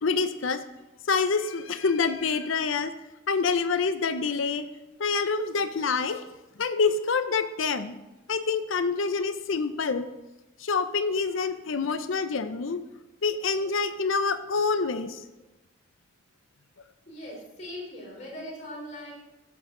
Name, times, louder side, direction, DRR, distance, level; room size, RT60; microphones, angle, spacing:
voice 1, 0.0-0.6 1.1-2.9 3.3-4.7 5.0-6.2 6.6-7.9 8.3-10.1 10.6-12.8 13.2-15.2, left 4 dB, 80° left, 9 dB, 0.7 m, -26 dB
voice 2, 17.1-19.1, left 1 dB, 35° left, -3 dB, 3.7 m, -41 dB
13.5 x 7.8 x 3.8 m, 1.0 s
head